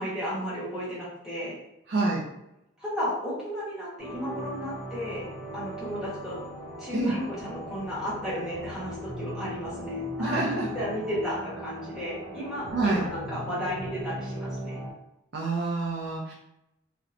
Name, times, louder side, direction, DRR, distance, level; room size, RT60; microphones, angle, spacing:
voice 1, 0.0-1.6 2.8-5.2 5.5-6.4 6.8-14.8, equal, ahead, -9 dB, 1.0 m, -33 dB
voice 2, 1.9-2.2 6.9-7.1 10.2-10.7 12.7-13.0 15.3-16.3, right 3 dB, 55° right, -3 dB, 0.4 m, -27 dB
sound 1, 4.0-14.9, equal, 85° right, 0.8 m, -38 dB
2.8 x 2.1 x 2.4 m, 0.85 s
head